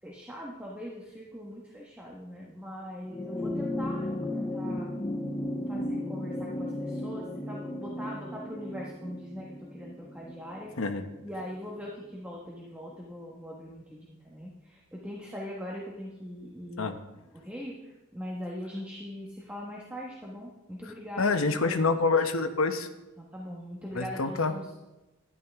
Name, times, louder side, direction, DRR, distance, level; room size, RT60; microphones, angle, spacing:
voice 1, 0.0-5.0 5.7-10.7 11.2-21.3 21.6-21.8 23.2-24.7, equal, 5° right, -4 dB, 1.3 m, -41 dB
sound 1, 3.0-11.7 12.9-13.0, left 1 dB, 20° left, 0.6 m, -35 dB
voice 2, 21.2-22.9 23.9-24.5, left 4 dB, 80° left, 7 dB, 0.9 m, -26 dB
12.0 x 10.5 x 3.5 m, 1.0 s
head